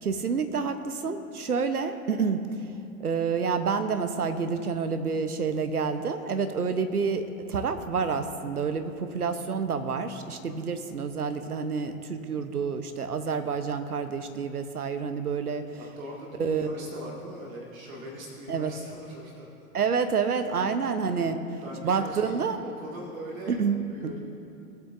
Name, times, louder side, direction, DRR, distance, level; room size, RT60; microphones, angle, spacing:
voice 1, 0.0-2.5 3.0-15.6 16.4-16.7 18.5-18.7 19.7-21.4 21.8-22.6 23.5-24.1, right 5 dB, 85° right, 9 dB, 0.9 m, -28 dB
voice 2, 15.7-19.5 20.4-20.5 21.6-23.6 23.9-24.2, equal, 65° right, -3 dB, 2.1 m, -41 dB
20.5 x 7.5 x 2.6 m, 2.7 s
figure-of-eight pair, 100°, 44 cm